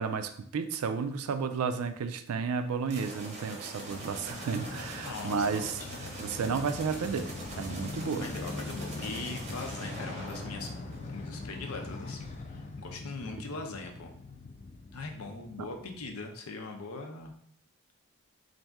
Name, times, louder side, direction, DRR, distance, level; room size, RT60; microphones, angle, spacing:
voice 1, 0.0-5.8 6.2-7.3 7.6-8.3, right 5 dB, 80° right, 9 dB, 0.4 m, -32 dB
sound 1, 2.9-11.5, right 1 dB, 30° right, 0.7 m, -44 dB
Motorcycle, 3.9-16.1, left 3 dB, 30° left, 0.3 m, -42 dB
voice 2, 5.0-6.0 8.0-10.7 11.1-14.1 14.9-17.3, left 3 dB, 75° left, 3 dB, 0.6 m, -41 dB
4.1 x 2.6 x 3.5 m, 0.64 s
head